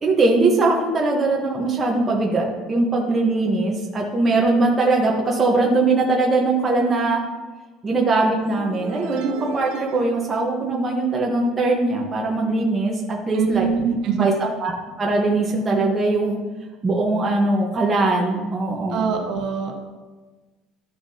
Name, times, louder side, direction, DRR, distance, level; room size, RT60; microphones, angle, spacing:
voice 1, 0.0-7.2 7.8-13.7 14.2-16.4 16.8-19.1, right 2 dB, 20° right, -1 dB, 1.1 m, -21 dB
sound 1, 8.4-11.3, right 6 dB, 85° right, 0.9 m, -37 dB
voice 2, 13.3-14.3 18.9-19.8, right 6 dB, 55° right, 2 dB, 1.2 m, -23 dB
12.5 x 6.8 x 2.8 m, 1.3 s
cardioid pair, 165°, 0 cm